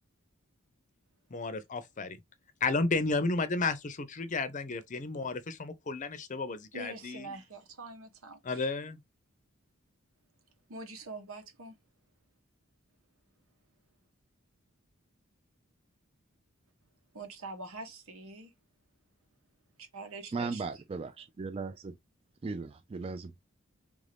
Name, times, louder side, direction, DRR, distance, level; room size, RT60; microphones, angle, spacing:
voice 1, 1.3-2.2 2.6-7.3 8.4-9.0, left 3 dB, 35° left, 0.5 m, -32 dB
voice 2, 6.7-8.6 10.7-11.8 17.1-18.5 19.8-20.6, right 3 dB, 85° right, 1.1 m, -44 dB
voice 3, 20.3-22.0 22.4-23.4, right 4 dB, 25° right, 0.3 m, -37 dB
3.5 x 2.6 x 3.3 m
head